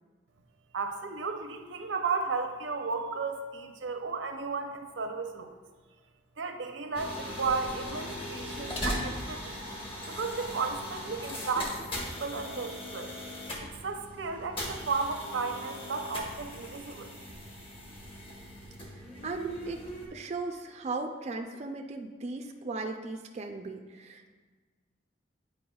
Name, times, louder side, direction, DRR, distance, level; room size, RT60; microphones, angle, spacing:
voice 1, 0.7-5.6 6.4-9.6 10.1-13.1 13.6-17.1, right 4 dB, 85° right, 5 dB, 0.6 m, -34 dB
sound 1, 6.9-20.1, equal, 30° left, 1.0 m, -39 dB
voice 2, 19.2-19.8 20.1-24.3, right 3 dB, 35° right, 3 dB, 0.3 m, -37 dB
9.3 x 4.6 x 2.3 m, 1.4 s
head